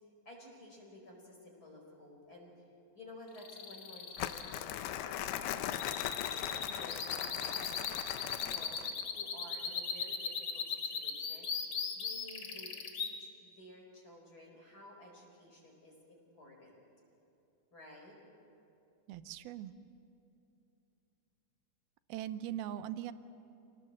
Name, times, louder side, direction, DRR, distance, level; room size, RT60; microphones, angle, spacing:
voice 1, 0.2-2.6 2.9-5.8 6.3-7.7 8.3-11.5 11.9-16.8 17.7-18.2, left 1 dB, 25° left, 0 dB, 4.8 m, -54 dB
sound 1, 3.3-13.1, left 6 dB, 60° left, 1.3 m, -38 dB
Crumpling crinkling, 4.2-9.0, left 12 dB, 85° left, 2.7 m, -39 dB
voice 2, 19.1-19.7 22.1-23.1, right 12 dB, 80° right, 12 dB, 2.6 m, -40 dB
27.5 x 18.5 x 7.6 m, 2.7 s
omnidirectional pair, 4.5 m